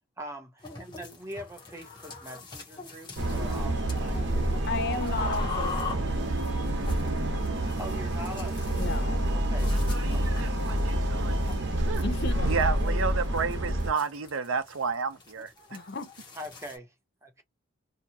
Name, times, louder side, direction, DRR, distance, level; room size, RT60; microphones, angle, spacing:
voice 1, 0.2-4.6 5.2-5.8 7.8-9.1 9.3-9.7 10.1-10.2 12.6-13.0 16.4-16.9 17.2-17.4, equal, 15° right, 0.8 m, -43 dB
sound 1, 0.6-16.8, left 5 dB, 20° left, 0.9 m, -43 dB
sound 2, 3.2-13.9, right 1 dB, 55° right, 1.0 m, -28 dB
voice 2, 4.7-6.2 8.8-9.2 12.0-12.5 15.7-16.1, left 3 dB, 55° left, 0.6 m, -34 dB
voice 3, 9.7-11.4 11.9-12.0 12.5-15.5, right 5 dB, 80° right, 0.6 m, -31 dB
2.8 x 2.3 x 2.7 m
head